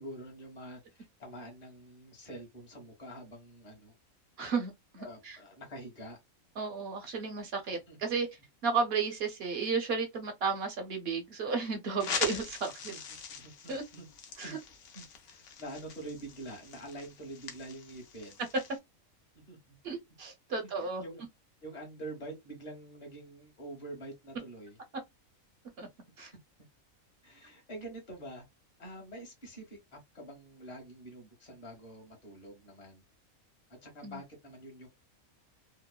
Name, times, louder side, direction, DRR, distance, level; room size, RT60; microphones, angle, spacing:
voice 1, 0.0-3.9 5.0-6.2 7.9-8.0 12.0-12.4 12.9-13.0 13.3-14.5 14.9-18.4 19.3-19.8 20.6-21.2 21.6-24.8 27.2-28.4 28.8-33.0 33.7-34.9, right 1 dB, 30° left, 1.0 m, -46 dB
voice 2, 4.4-5.4 6.6-8.3 8.6-12.9 13.7-13.8 14.4-14.6 19.8-21.0 25.8-25.9 26.2-26.3 34.0-34.2, right 5 dB, 55° right, 0.7 m, -33 dB
sound 1, 12.0-18.8, left 6 dB, 65° left, 0.9 m, -41 dB
3.0 x 2.0 x 2.2 m
omnidirectional pair, 1.5 m